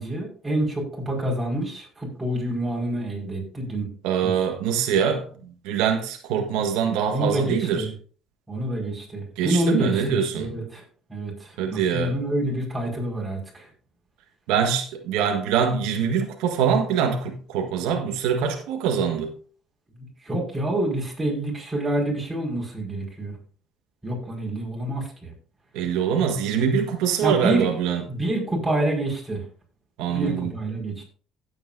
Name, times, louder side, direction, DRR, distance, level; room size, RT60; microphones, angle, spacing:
voice 1, 0.0-3.9 4.2-4.3 7.1-7.9 8.5-10.8 11.1-13.7 20.0-23.3 24.0-25.3 27.2-27.7 28.1-29.4 30.1-31.0, right 1 dB, 10° right, 5.1 m, -27 dB
voice 2, 4.0-7.9 9.4-10.5 11.6-12.2 14.5-19.3 25.7-28.0 30.0-30.5, right 7 dB, 85° right, 1.5 m, -24 dB
16.0 x 8.2 x 2.6 m
cardioid pair, 125°, 0 cm